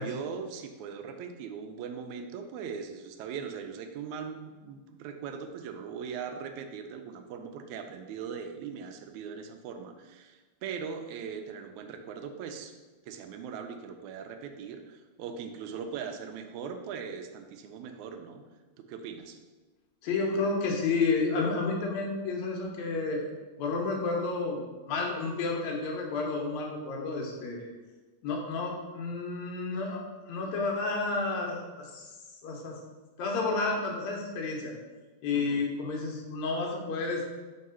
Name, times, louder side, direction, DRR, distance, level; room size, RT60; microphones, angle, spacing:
voice 1, 0.0-12.7 13.0-18.4 18.8-19.4 35.3-35.7, right 6 dB, 85° right, 6 dB, 2.0 m, -40 dB
voice 2, 20.0-27.7 28.2-32.1 32.4-32.8 33.2-34.7 35.2-37.3, left 3 dB, 75° left, 0 dB, 2.2 m, -31 dB
4.7 x 3.6 x 5.6 m, 1.3 s
omnidirectional pair, 3.3 m